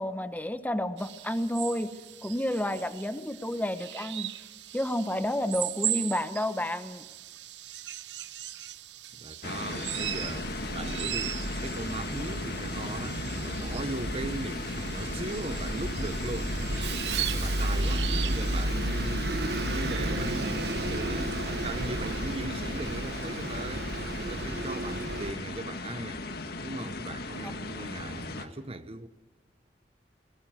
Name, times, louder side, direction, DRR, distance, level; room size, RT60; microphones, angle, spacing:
voice 1, 0.0-1.9 2.2-4.3 4.7-7.0, left 1 dB, 10° left, 1.0 m, -30 dB
sound 1, 1.0-18.7, right 13 dB, 80° right, 0.8 m, -39 dB
voice 2, 9.1-16.6 16.8-26.3 26.6-29.1, right 2 dB, 35° right, 0.9 m, -39 dB
sound 2, 9.4-28.5, left 2 dB, 65° left, 1.8 m, -37 dB
Bus, 10.0-25.3, right 1 dB, 65° right, 1.3 m, -33 dB
20.5 x 19.5 x 9.3 m
head